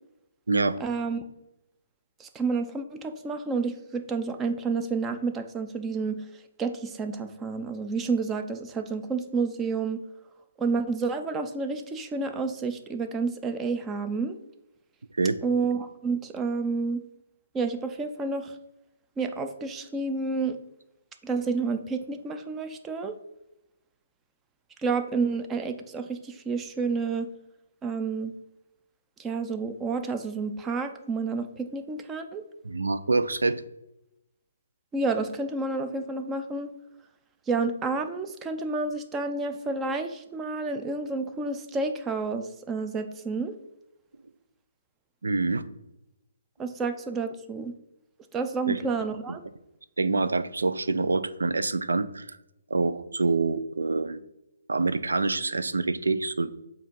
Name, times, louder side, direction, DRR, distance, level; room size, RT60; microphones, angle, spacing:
voice 1, 0.8-1.2 2.2-6.2 6.6-10.0 10.6-14.4 15.4-17.0 17.5-18.6 19.2-20.6 21.2-23.1 24.8-27.3 27.8-28.3 29.2-32.4 34.9-36.7 37.5-43.5 46.6-47.7 48.3-49.4, right 4 dB, 15° right, 7 dB, 0.5 m, -30 dB
voice 2, 32.6-33.6 45.2-45.6 48.7-48.8 50.0-52.4 52.7-54.2 54.7-56.6, right 3 dB, 90° right, 13 dB, 0.5 m, -26 dB
7.5 x 2.5 x 5.3 m, 0.89 s
hypercardioid pair, 150°, 0 cm